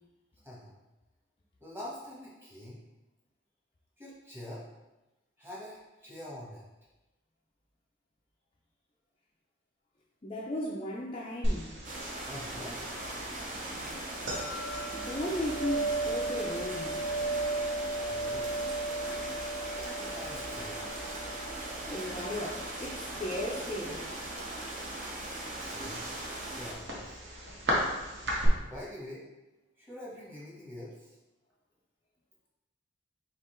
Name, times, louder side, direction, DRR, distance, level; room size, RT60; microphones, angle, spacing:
voice 1, 0.4-0.7 1.6-2.8 4.0-4.6 5.4-6.6 12.3-12.8 17.8-18.7 19.7-21.2 25.4-26.1 26.6-27.1 28.6-29.2 29.8-31.2, left 1 dB, 10° right, -6 dB, 1.1 m, -45 dB
voice 2, 10.2-11.8 14.9-17.0 21.9-24.2, left 1 dB, 30° left, -4 dB, 0.4 m, -36 dB
sound 1, 11.4-28.5, right 1 dB, 60° right, 1.0 m, -36 dB
sound 2, 11.8-26.7, right 1 dB, 40° right, 0.7 m, -40 dB
3.6 x 2.9 x 4.3 m, 1.0 s
head